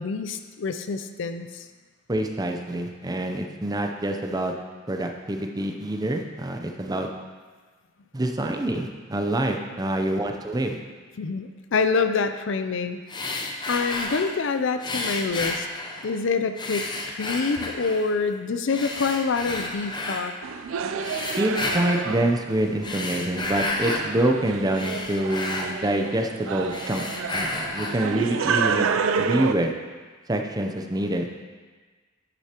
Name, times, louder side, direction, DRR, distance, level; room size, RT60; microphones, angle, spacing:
voice 1, 0.0-1.6 11.2-13.0 13.7-15.7 16.0-20.3, left 4 dB, 65° left, 9 dB, 0.5 m, -26 dB
voice 2, 2.1-4.5 4.9-7.1 8.1-10.8 21.4-27.0 27.3-29.7 30.3-31.3, right 1 dB, 20° right, 4 dB, 0.6 m, -26 dB
sound 1, 13.1-14.4 14.8-16.2 16.6-18.1 18.7-20.3 21.0-22.1 22.7-24.1 24.5-26.3 26.6-28.1, left 2 dB, 20° left, 0.7 m, -31 dB
sound 2, 20.4-29.5, right 6 dB, 85° right, 0.4 m, -29 dB
9.9 x 8.0 x 2.9 m, 1.4 s
head